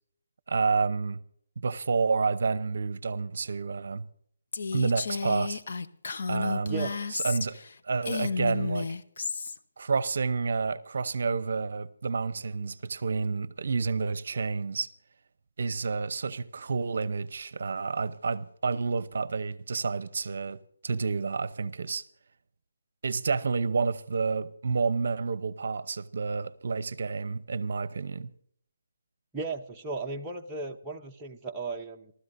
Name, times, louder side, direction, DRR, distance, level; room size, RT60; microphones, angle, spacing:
voice 1, 0.5-1.2 1.6-4.1 4.7-5.6 6.3-7.6 7.8-8.9 9.8-14.9 15.6-22.0 23.0-28.3, right 4 dB, 55° right, 0.7 m, -29 dB
Female speech woman speaking, 4.5-7.7 8.0-9.6, left 4 dB, 50° left, 1.0 m, -32 dB
voice 2, 29.3-32.1, right 3 dB, 10° right, 0.7 m, -35 dB
29.5 x 13.0 x 2.6 m
hypercardioid pair, 170°, 0 cm